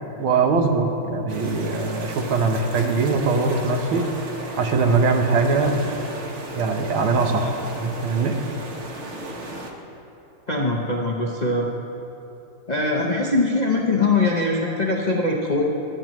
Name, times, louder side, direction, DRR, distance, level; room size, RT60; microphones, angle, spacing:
voice 1, 0.2-4.1 4.6-5.8 6.6-8.4, right 4 dB, 85° right, 4 dB, 1.8 m, -21 dB
sound 1, 1.3-9.7, right 2 dB, 45° right, 1.1 m, -35 dB
voice 2, 10.5-11.7 12.7-15.6, left 2 dB, 60° left, -1 dB, 0.4 m, -22 dB
23.5 x 9.1 x 3.1 m, 2.9 s
omnidirectional pair, 2.2 m